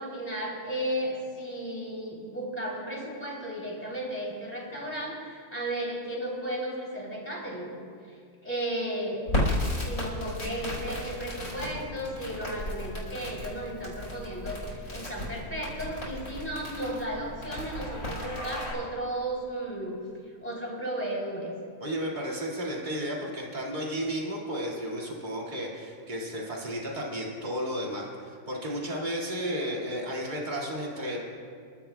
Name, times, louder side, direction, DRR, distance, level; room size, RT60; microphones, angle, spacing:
voice 1, 0.0-7.8 8.4-9.2 9.7-20.0 20.4-21.5, right 1 dB, 5° left, -4 dB, 3.3 m, -34 dB
Crackle, 9.3-18.7, left 1 dB, 55° left, 5.0 m, -34 dB
voice 2, 21.8-31.2, equal, 25° right, -3 dB, 2.3 m, -33 dB
29.0 x 12.5 x 2.3 m, 2.2 s
omnidirectional pair, 1.8 m